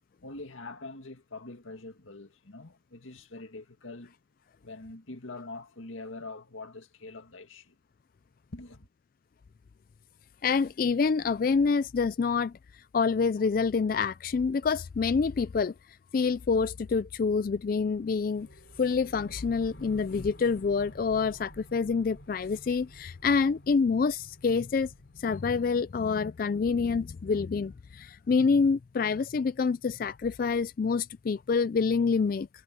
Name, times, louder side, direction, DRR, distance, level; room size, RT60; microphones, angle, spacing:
voice 1, 0.2-4.2 4.6-7.8 8.5-8.9, left 2 dB, 90° left, 2.1 m, -44 dB
voice 2, 10.4-15.7 16.1-18.5 18.8-32.5, left 5 dB, 45° left, 0.3 m, -27 dB
sound 1, 17.7-27.8, equal, 65° left, 3.2 m, -52 dB
head